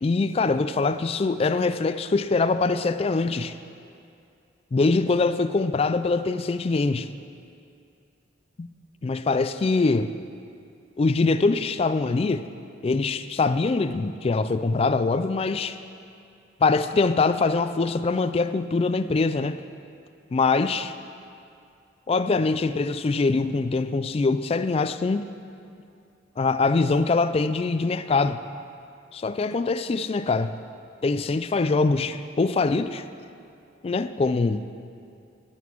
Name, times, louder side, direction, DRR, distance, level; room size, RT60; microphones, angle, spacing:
voice 1, 0.0-3.6 4.7-7.1 8.6-8.7 9.0-10.1 11.0-12.5 12.8-15.8 16.6-19.6 20.3-20.9 22.1-25.3 26.4-28.4 29.1-30.6 31.0-33.1 33.8-34.7, left 3 dB, 30° left, 12 dB, 0.3 m, -23 dB
11.0 x 6.0 x 7.2 m, 2.5 s
head